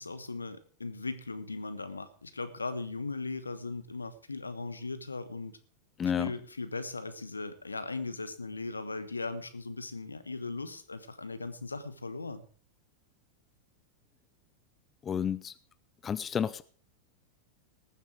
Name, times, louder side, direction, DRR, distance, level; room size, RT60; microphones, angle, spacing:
voice 1, 0.0-5.5 6.2-12.4, left 3 dB, 80° left, 14 dB, 1.1 m, -38 dB
voice 2, 6.0-6.3 15.0-15.5 16.0-16.6, left 8 dB, 20° left, 15 dB, 0.5 m, -31 dB
19.0 x 7.4 x 4.8 m, 0.42 s
figure-of-eight pair, 90°, 0 cm